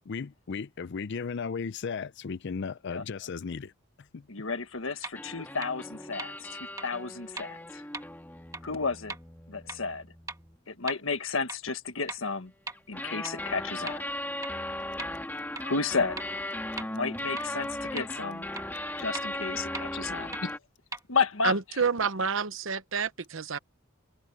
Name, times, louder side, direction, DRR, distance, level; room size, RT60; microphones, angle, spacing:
voice 1, 0.0-3.7 4.0-4.3, left 5 dB, 55° left, 0.5 m, -35 dB
voice 2, 4.3-7.8 8.6-9.2 9.5-10.1 10.7-12.5 12.9-14.0 15.6-16.2 16.8-18.4 19.0-20.5 21.1-21.8, left 4 dB, 70° left, 1.6 m, -32 dB
sound 1, 5.0-5.1 5.6-5.7 6.2-6.3 6.8-6.9 7.4-7.5 7.9-8.0 8.5-8.6 9.1-9.2 9.7-9.8 10.3-10.4 10.9-11.0 11.5-11.6 12.1-12.2 12.7-12.8 13.3-13.4 13.9-14.0 14.4-14.5 15.0-15.1 15.6-15.7 16.2-16.3 16.8-16.9 17.4-17.5 18.0-18.1 18.6-18.7 19.1-19.2 19.7-19.8 20.3-20.4 20.9-21.0, right 3 dB, 15° right, 1.4 m, -37 dB
sound 2, 5.1-10.6 12.7-20.6, left 1 dB, 10° left, 2.0 m, -37 dB
voice 3, 21.4-23.6, right 5 dB, 65° right, 0.9 m, -28 dB
head